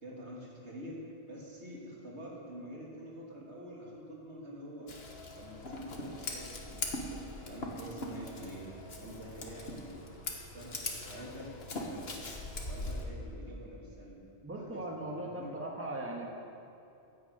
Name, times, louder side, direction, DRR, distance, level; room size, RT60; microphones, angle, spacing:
voice 1, 0.0-4.9 5.3-8.7 9.0-10.0 10.5-12.1 12.7-14.2 14.5-15.5, equal, 80° right, -4 dB, 3.0 m, -47 dB
Scissors, 4.9-13.1, left 2 dB, 65° left, 1.6 m, -41 dB
voice 2, 14.4-16.3, right 1 dB, 10° right, -1 dB, 1.5 m, -39 dB
11.0 x 10.5 x 8.0 m, 2.7 s
omnidirectional pair, 1.1 m